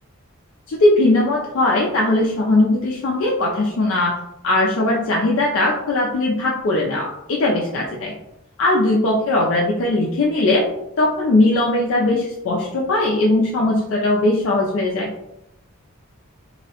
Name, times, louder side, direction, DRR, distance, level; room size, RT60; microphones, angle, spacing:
voice 1, 0.7-4.1 4.4-8.2 8.6-10.7 11.0-15.1, left 2 dB, 60° left, -2 dB, 0.3 m, -19 dB
2.7 x 2.0 x 2.8 m, 0.85 s
head